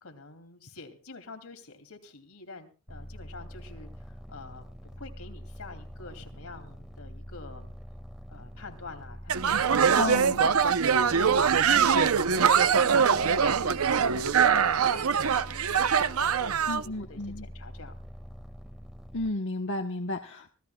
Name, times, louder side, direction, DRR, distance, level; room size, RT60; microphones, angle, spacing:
voice 1, 0.0-7.7 8.3-17.9, left 3 dB, 80° left, 6 dB, 2.8 m, -47 dB
sound 1, 2.9-19.3, equal, ahead, 1.7 m, -45 dB
sound 2, 9.3-16.8, right 6 dB, 80° right, 0.7 m, -23 dB
voice 2, 9.9-10.4 16.7-17.5 19.1-20.5, left 2 dB, 60° left, 4 dB, 1.1 m, -32 dB
25.5 x 16.5 x 2.3 m, 0.34 s
head